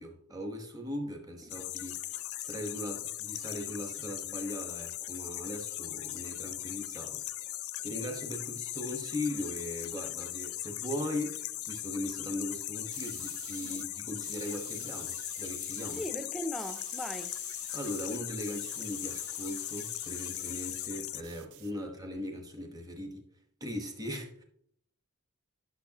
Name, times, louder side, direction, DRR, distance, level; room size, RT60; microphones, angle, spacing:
voice 1, 0.0-7.2 7.8-16.0 17.7-23.2 23.6-24.4, left 1 dB, 15° right, 1.2 m, -39 dB
sound 1, 1.5-21.2, left 15 dB, 70° left, 0.5 m, -39 dB
sound 2, 12.9-13.9 14.2-16.1 16.4-20.9 21.2-22.2, right 12 dB, 70° right, 0.5 m, -49 dB
voice 2, 15.9-17.3, left 1 dB, ahead, 0.5 m, -38 dB
11.5 x 6.4 x 2.9 m
head